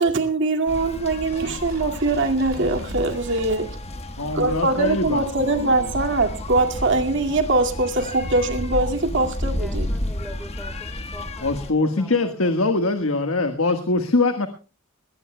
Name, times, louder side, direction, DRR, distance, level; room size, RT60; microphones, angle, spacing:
voice 1, 0.0-3.7 4.3-9.9, right 2 dB, 60° right, 4 dB, 2.2 m, -22 dB
sound 1, 0.7-11.7, left 1 dB, 30° left, 1.5 m, -32 dB
sound 2, 1.3-4.0 4.5-4.6, right 2 dB, 85° right, 2.1 m, -37 dB
voice 2, 4.2-5.9 11.4-14.5, left 2 dB, 80° left, 7 dB, 1.5 m, -23 dB
voice 3, 9.5-12.5, equal, ahead, 7 dB, 3.2 m, -42 dB
20.5 x 18.0 x 2.2 m, 0.34 s
head